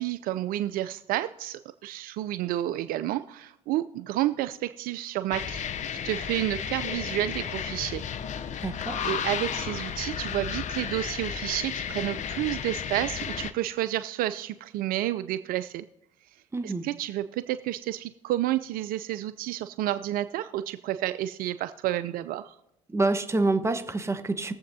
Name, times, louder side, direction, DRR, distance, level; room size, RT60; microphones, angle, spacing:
voice 1, 0.0-5.6 6.0-8.0 9.0-15.9 16.6-22.6, right 14 dB, 55° right, 13 dB, 0.4 m, -30 dB
sound 1, 5.3-13.5, left 8 dB, 45° left, 0.7 m, -33 dB
voice 2, 8.6-9.1 16.5-16.8 22.9-24.5, right 2 dB, 15° right, 8 dB, 1.0 m, -27 dB
21.0 x 7.6 x 2.7 m, 0.88 s
hypercardioid pair, 65°, 17 cm